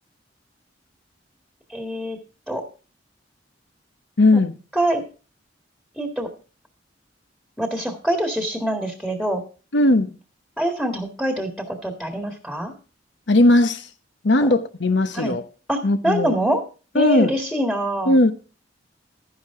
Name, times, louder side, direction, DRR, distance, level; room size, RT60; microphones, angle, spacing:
voice 1, 1.7-2.2 2.5-2.6 4.8-5.0 6.0-6.3 7.6-9.4 10.6-12.7 14.4-14.5 15.1-15.4 15.7-15.8 16.0-16.6 16.9-18.2, right 1 dB, 5° left, 1.7 m, -24 dB
voice 2, 4.2-4.5 9.7-10.2 13.3-13.9 14.2-15.4 15.8-16.3 16.9-17.3 18.1-18.3, left 2 dB, 70° left, 1.0 m, -17 dB
12.0 x 10.5 x 3.7 m
head